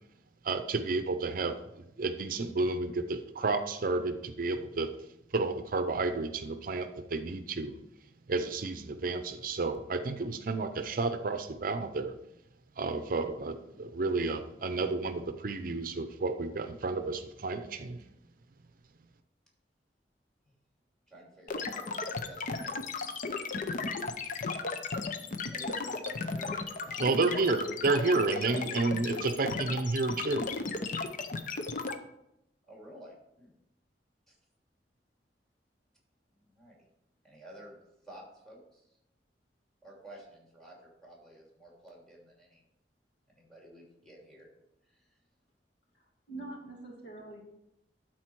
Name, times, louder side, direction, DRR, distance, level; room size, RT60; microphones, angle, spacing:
voice 1, 0.4-1.6 2.0-4.9 5.3-7.7 8.3-12.1 12.8-18.0 27.0-30.5, right 3 dB, 55° right, 9 dB, 0.6 m, -31 dB
voice 2, 21.1-23.4 25.5-27.0 29.1-29.5 32.7-33.5 34.3-34.4 36.3-36.9 37.2-37.8 38.0-39.0 39.8-42.6 43.3-44.5 44.9-45.2, equal, 5° left, -2 dB, 2.7 m, -52 dB
sound 1, 21.5-31.9, left 4 dB, 50° left, 0.7 m, -35 dB
voice 3, 45.9-47.4, right 2 dB, 70° left, -1 dB, 2.4 m, -45 dB
12.0 x 4.4 x 4.6 m, 0.85 s
head